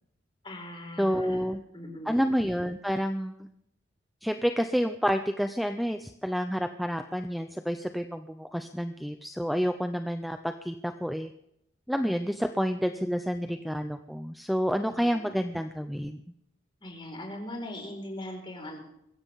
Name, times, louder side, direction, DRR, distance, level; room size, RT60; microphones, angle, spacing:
voice 1, 0.4-1.4 1.7-2.1 16.8-18.8, left 1 dB, 30° left, 1 dB, 4.5 m, -40 dB
voice 2, 1.0-1.6 2.0-3.5 4.2-11.3 11.9-16.2, equal, ahead, 7 dB, 0.5 m, -29 dB
22.5 x 15.5 x 3.6 m, 0.77 s
head